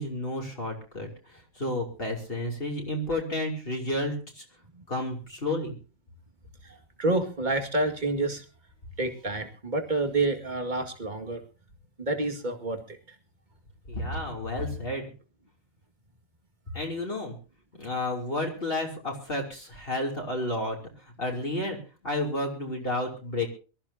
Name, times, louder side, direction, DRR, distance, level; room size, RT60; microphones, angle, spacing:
voice 1, 0.0-4.4 4.9-5.7 13.9-15.1 16.7-17.3 17.8-20.8 21.0-21.8 22.0-23.5, left 1 dB, 45° left, 0 dB, 3.3 m, -31 dB
voice 2, 6.6-8.4 9.0-11.4 12.0-13.2, right 2 dB, 35° right, 5 dB, 2.2 m, -29 dB
23.5 x 14.0 x 2.8 m, 0.34 s
omnidirectional pair, 1.4 m